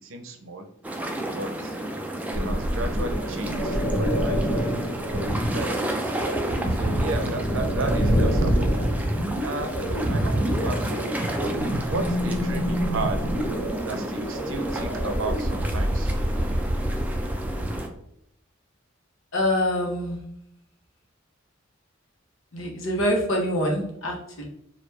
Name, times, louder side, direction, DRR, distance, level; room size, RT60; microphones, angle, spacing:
voice 1, 0.0-0.7 1.3-1.8 2.3-6.1 6.7-8.9 9.4-11.1 11.9-13.3 13.8-16.1, right 2 dB, 80° right, 6 dB, 0.6 m, -34 dB
sound 1, 0.8-17.9, right 1 dB, 10° right, 0.3 m, -32 dB
sound 2, 2.3-17.8, equal, 55° left, 1.3 m, -26 dB
voice 2, 19.3-20.2 22.5-24.5, left 1 dB, 75° left, 0 dB, 0.9 m, -25 dB
3.3 x 2.4 x 3.2 m, 0.75 s
head